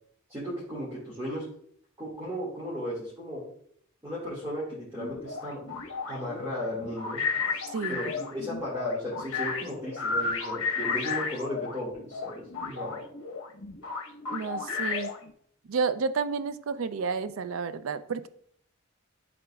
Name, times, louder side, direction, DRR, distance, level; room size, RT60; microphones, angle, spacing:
voice 1, 0.3-1.4 2.0-3.4 4.0-5.6 6.1-7.2 7.9-13.0, left 1 dB, 15° right, -8 dB, 1.9 m, -35 dB
sound 1, 5.0-11.8 12.1-15.3, left 5 dB, 85° left, 1.0 m, -33 dB
voice 2, 7.7-8.1 14.3-15.1 15.7-18.3, right 5 dB, 80° right, 12 dB, 0.4 m, -31 dB
11.0 x 3.9 x 2.3 m, 0.64 s
head